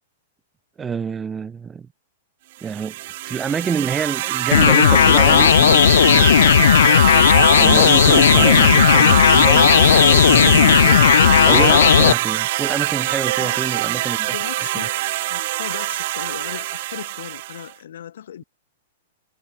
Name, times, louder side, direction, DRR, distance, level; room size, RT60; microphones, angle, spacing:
voice 1, 0.8-1.9 2.6-2.9 3.3-6.6 7.6-14.3, right 6 dB, 10° right, 3.8 m, -27 dB
sound 1, 2.6-17.7, right 18 dB, 45° right, 1.5 m, -23 dB
sound 2, 4.5-12.1, left 9 dB, 90° left, 0.6 m, -13 dB
voice 2, 13.4-18.4, left 10 dB, 70° left, 4.6 m, -37 dB
supercardioid pair, 170°, 0 cm